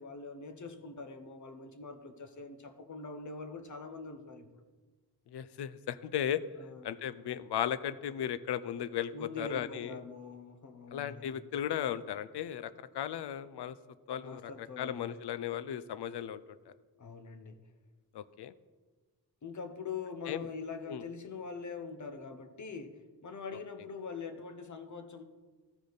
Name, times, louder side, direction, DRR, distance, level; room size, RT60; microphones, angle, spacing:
voice 1, 0.0-4.6 6.6-6.8 9.1-11.4 14.2-15.1 17.0-17.7 19.4-25.2, left 4 dB, 45° left, 8 dB, 0.9 m, -43 dB
voice 2, 5.3-6.4 6.8-10.0 10.9-13.8 14.1-16.4 16.7-16.8 18.1-18.5 20.3-20.4 20.9-21.0, left 10 dB, 80° left, 15 dB, 0.5 m, -36 dB
14.0 x 5.0 x 4.0 m, 1.3 s
wide cardioid pair, 100°, 40 cm